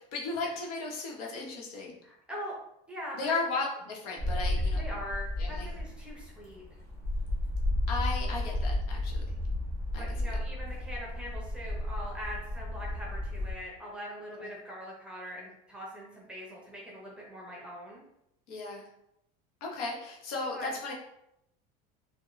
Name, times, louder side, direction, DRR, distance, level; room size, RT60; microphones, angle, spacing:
voice 1, 0.1-2.0 3.1-4.8 5.4-5.7 7.9-9.2 9.9-10.0 14.4-14.5 18.5-18.9 19.6-20.9, left 3 dB, 75° left, -1 dB, 1.1 m, -35 dB
voice 2, 2.0-2.5 2.9-3.3 4.7-6.6 10.0-18.0 20.5-20.8, equal, 5° right, -3 dB, 0.7 m, -42 dB
sound 1, 4.2-13.5, left 1 dB, 15° left, 1.0 m, -32 dB
4.9 x 2.2 x 3.1 m, 0.80 s
cardioid pair, 175°, 19 cm